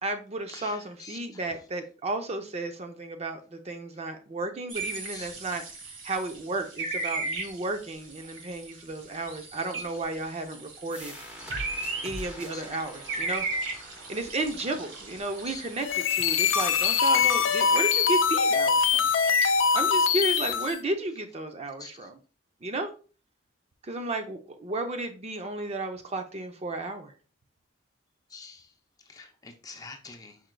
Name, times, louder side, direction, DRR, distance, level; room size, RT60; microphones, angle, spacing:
voice 1, 0.0-5.6 5.9-11.1 12.0-13.5 14.1-19.1 19.7-22.2 22.6-22.9 23.8-27.1, right 2 dB, 35° right, 6 dB, 0.5 m, -33 dB
voice 2, 0.5-1.4 5.1-5.3 12.5-12.6 15.4-15.6 21.8-21.9 28.3-28.7 29.1-30.4, left 4 dB, 20° left, 4 dB, 0.6 m, -45 dB
sound 1, 4.7-20.7, right 3 dB, 75° right, 1.3 m, -38 dB
sound 2, 10.9-16.3, left 1 dB, 5° right, 1.0 m, -44 dB
sound 3, 15.8-20.8, left 6 dB, 85° left, 0.5 m, -23 dB
4.9 x 4.5 x 2.2 m, 0.36 s
head